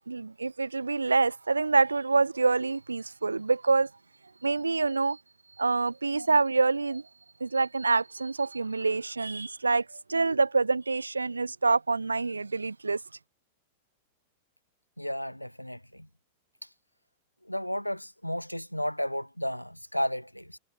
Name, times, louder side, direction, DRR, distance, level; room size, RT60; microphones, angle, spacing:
voice 1, 0.1-3.9 4.4-5.2 5.6-7.1 7.4-13.0, right 3 dB, 80° right, 0.8 m, -26 dB
voice 2, 15.0-16.1 17.4-20.6, equal, 90° left, 1.0 m, -33 dB
figure-of-eight pair, 90°, 0 cm